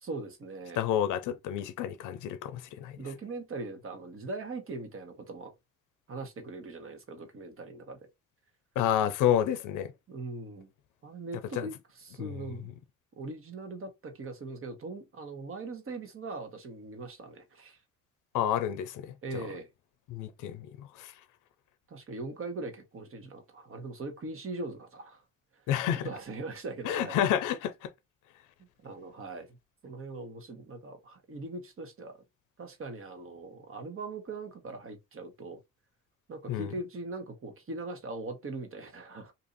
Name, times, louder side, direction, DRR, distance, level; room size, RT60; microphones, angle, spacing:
voice 1, 0.0-0.9 3.0-5.5 6.1-8.0 10.1-10.7 11.0-12.7 13.2-17.8 19.2-19.7 21.9-25.2 25.5-25.6 26.0-27.2 28.8-29.6 29.8-32.2 32.6-35.6 36.3-39.3, right 3 dB, 45° right, 1.2 m, -40 dB
voice 2, 0.8-2.9 8.8-9.9 11.6-11.7 12.2-12.3 18.3-19.1 20.1-21.1 25.7-26.1 26.8-27.9 36.5-36.7, left 10 dB, 90° left, 0.5 m, -29 dB
2.8 x 2.6 x 3.9 m
cardioid pair, 90°, 30 cm